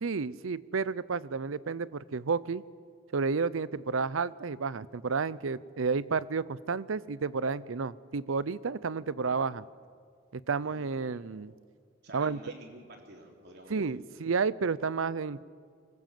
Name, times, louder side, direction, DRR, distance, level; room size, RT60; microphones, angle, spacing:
voice 1, 0.0-2.6 3.1-9.6 10.3-11.5 12.1-12.4 13.7-15.4, right 5 dB, 80° right, 19 dB, 0.6 m, -31 dB
voice 2, 8.7-9.5 10.6-11.3 12.0-13.9, right 1 dB, 55° right, 2 dB, 3.3 m, -52 dB
24.5 x 21.0 x 7.6 m, 2.1 s
head